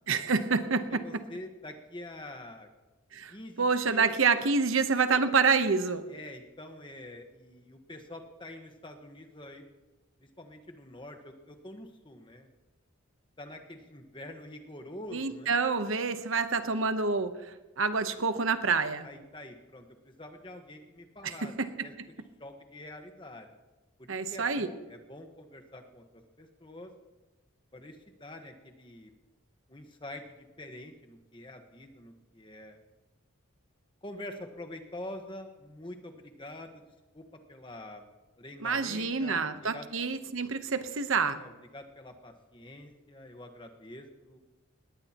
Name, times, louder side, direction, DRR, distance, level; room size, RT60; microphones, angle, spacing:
voice 1, 0.1-1.0 3.1-6.0 15.1-19.1 21.2-22.1 24.1-24.7 38.6-41.4, right 4 dB, 70° right, 9 dB, 1.0 m, -28 dB
voice 2, 0.9-2.7 3.3-4.1 6.1-9.6 10.4-12.5 13.4-15.6 19.0-21.5 21.8-23.5 24.0-26.9 27.7-29.1 29.7-32.8 34.0-36.8 37.1-38.1 38.4-40.1 41.4-44.4, left 1 dB, 25° left, 5 dB, 1.3 m, -46 dB
19.5 x 18.0 x 3.0 m, 1.1 s
head